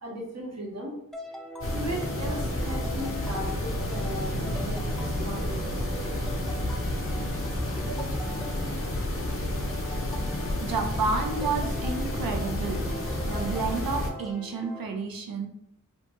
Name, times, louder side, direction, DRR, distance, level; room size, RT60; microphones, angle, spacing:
voice 1, 0.0-1.0 1.7-6.0, right 1 dB, 50° right, -1 dB, 0.8 m, -37 dB
sound 1, 1.1-14.8, equal, ahead, 0.4 m, -42 dB
sound 2, 1.6-14.1, left 1 dB, 40° left, 0.6 m, -30 dB
sound 3, 1.7-9.2, right 2 dB, 20° right, 0.8 m, -41 dB
voice 2, 7.9-8.3 10.6-12.9 13.3-15.5, right 4 dB, 80° right, 3 dB, 0.6 m, -31 dB
2.8 x 2.2 x 2.9 m, 0.81 s
wide cardioid pair, 55°, 34 cm